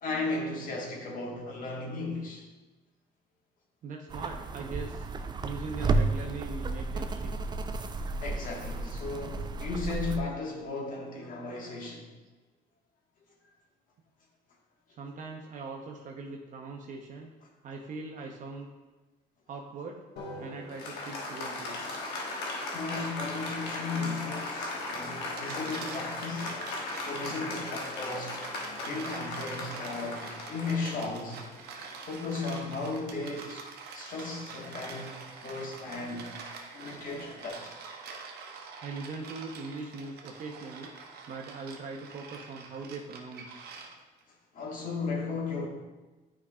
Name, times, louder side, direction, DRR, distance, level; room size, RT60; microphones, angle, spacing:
voice 1, 0.0-2.4 7.7-7.8 8.2-12.0 22.7-31.4 32.0-36.3 36.7-37.7 44.5-45.7, left 3 dB, 55° left, 1.5 m, -36 dB
voice 2, 3.8-5.1 5.4-7.3 15.0-17.3 17.6-18.7 19.5-20.0 20.4-21.8 38.8-40.9 41.3-43.9, right 4 dB, 50° right, 0.7 m, -41 dB
sound 1, 4.1-10.2, right 3 dB, 25° right, 0.4 m, -32 dB
Applause, 20.2-32.0, left 2 dB, 90° left, 1.2 m, -37 dB
sound 2, 25.2-44.2, right 5 dB, 70° right, 1.0 m, -45 dB
9.5 x 4.9 x 2.3 m
cardioid pair, 110°, 17 cm